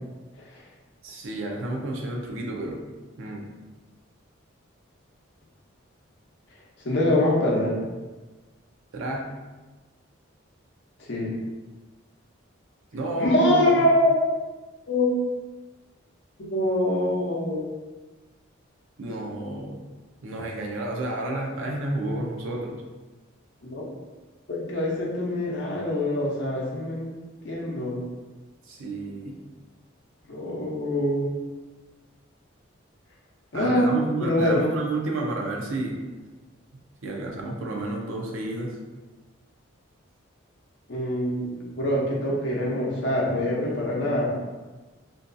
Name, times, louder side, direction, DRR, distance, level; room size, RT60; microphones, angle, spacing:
voice 1, 1.0-2.8 3.2-3.5 8.9-9.3 12.9-13.8 19.0-19.8 20.2-22.8 28.7-29.4 33.5-36.0 37.0-38.8, right 2 dB, 75° right, 0 dB, 0.5 m, -30 dB
voice 2, 6.8-7.8 11.1-11.3 13.2-14.3 14.8-15.1 16.4-17.6 23.6-23.8 24.7-27.1 27.4-28.0 30.3-31.4 33.5-33.9 34.2-34.6 40.9-44.3, left 1 dB, 55° left, -3 dB, 0.6 m, -24 dB
2.5 x 2.3 x 2.5 m, 1.2 s
head